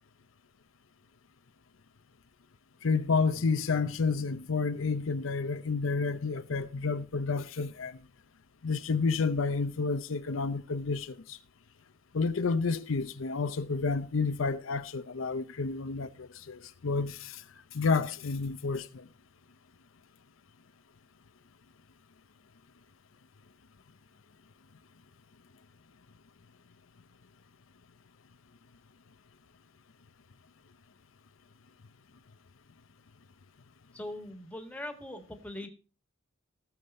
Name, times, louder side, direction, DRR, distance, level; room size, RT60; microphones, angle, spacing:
voice 1, 2.8-8.0 8.6-11.4 12.1-17.4 17.7-19.1, left 4 dB, 85° left, 0.7 m, -30 dB
voice 2, 33.9-35.7, left 1 dB, 5° left, 1.7 m, -41 dB
17.0 x 7.2 x 4.3 m
head